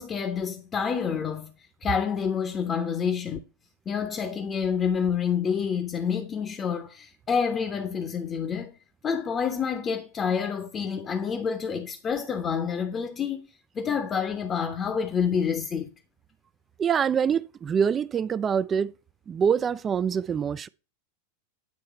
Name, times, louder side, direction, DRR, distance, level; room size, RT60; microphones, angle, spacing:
voice 1, 0.0-1.5 1.8-3.4 3.9-8.7 9.0-13.5 13.7-15.9, left 6 dB, 25° left, 0.7 m, -28 dB
voice 2, 16.8-18.9 19.3-20.7, right 7 dB, 25° right, 0.3 m, -25 dB
9.5 x 3.2 x 4.6 m
figure-of-eight pair, 90°, 0 cm